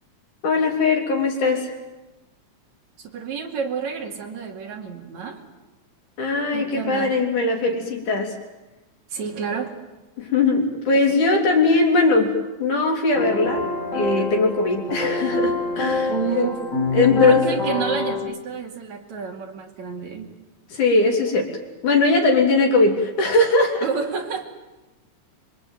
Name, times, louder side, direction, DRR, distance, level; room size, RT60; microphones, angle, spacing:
voice 1, 0.4-1.8 6.2-8.3 10.2-12.3 12.6-16.5 16.9-17.5 20.7-21.5 21.8-23.9, left 3 dB, 75° left, 2 dB, 5.1 m, -20 dB
voice 2, 3.0-5.4 6.5-7.2 9.1-9.7 16.1-16.6 17.0-20.3 23.8-24.4, right 6 dB, 65° right, 3 dB, 3.7 m, -29 dB
sound 1, 13.1-18.2, left 2 dB, 30° left, 7.7 m, -26 dB
26.0 x 24.0 x 9.3 m, 1.1 s
omnidirectional pair, 3.6 m